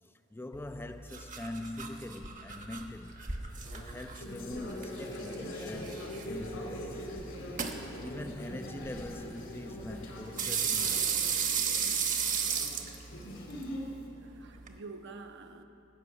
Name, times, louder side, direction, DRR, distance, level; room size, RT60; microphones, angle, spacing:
voice 1, 0.0-3.2 3.7-7.0 7.9-11.3, left 1 dB, 10° left, 0.3 m, -43 dB
sound 1, 0.5-14.8, right 6 dB, 40° right, 1.0 m, -36 dB
sound 2, 3.5-14.0, left 1 dB, 75° left, 2.7 m, -42 dB
voice 2, 7.4-7.8 12.5-13.1 13.5-13.9 14.2-15.6, right 3 dB, 60° right, 0.8 m, -50 dB
13.5 x 6.8 x 9.4 m
head